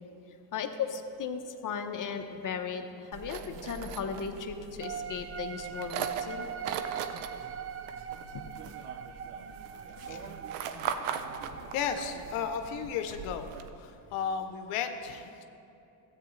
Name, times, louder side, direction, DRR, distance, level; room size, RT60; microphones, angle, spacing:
voice 1, 0.5-6.5 8.3-8.4 9.9-10.4, left 6 dB, 40° left, 5 dB, 0.9 m, -36 dB
sound 1, 3.1-13.7, right 7 dB, 80° right, 0.7 m, -40 dB
sound 2, 4.8-12.5, right 8 dB, 30° right, 0.4 m, -42 dB
voice 2, 11.7-13.5 13.7-15.4, left 7 dB, 85° left, 6 dB, 0.8 m, -34 dB
13.5 x 8.2 x 3.2 m, 2.8 s
supercardioid pair, 75°, 49 cm